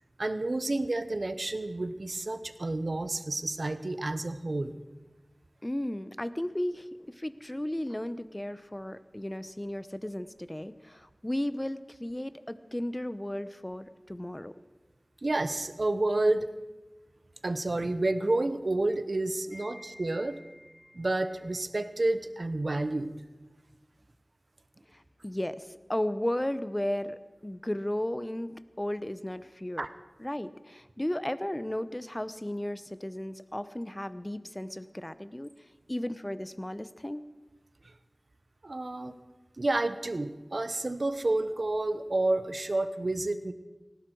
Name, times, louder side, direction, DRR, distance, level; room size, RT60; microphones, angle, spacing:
voice 1, 0.2-4.8 15.2-16.5 17.4-20.4 20.9-23.1 29.8-29.9 37.8-37.9 38.6-39.2 39.6-43.5, right 2 dB, 65° right, 11 dB, 0.9 m, -30 dB
voice 2, 5.6-14.5 19.5-21.0 24.9-29.9 30.2-35.5 35.9-37.2, left 1 dB, 20° left, 14 dB, 0.7 m, -35 dB
18.5 x 16.0 x 4.7 m, 1.2 s
wide cardioid pair, 50°, 0 cm